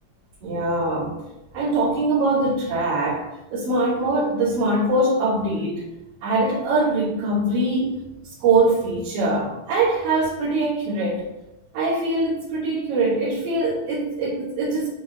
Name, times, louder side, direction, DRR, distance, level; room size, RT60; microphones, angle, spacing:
voice 1, 0.4-1.3 1.5-3.3 3.5-5.8 6.2-8.0 8.4-11.2 11.7-14.9, right 2 dB, 70° right, -11 dB, 3.7 m, -22 dB
10.5 x 3.6 x 3.1 m, 0.95 s
omnidirectional pair, 4.1 m